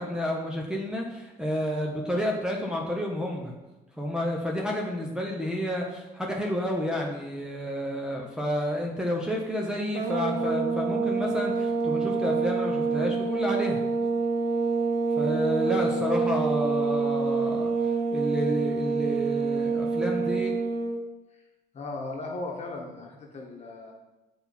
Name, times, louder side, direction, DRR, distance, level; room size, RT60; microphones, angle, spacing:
voice 1, 0.0-3.5 4.0-13.8 15.2-17.7 18.1-20.5, left 1 dB, 5° right, -1 dB, 1.0 m, -30 dB
sound 1, 9.9-21.0, right 4 dB, 70° right, 0.9 m, -27 dB
voice 2, 21.7-23.9, left 2 dB, 40° left, 0 dB, 1.5 m, -37 dB
7.9 x 4.3 x 4.1 m, 1.0 s
cardioid pair, 110°, 17 cm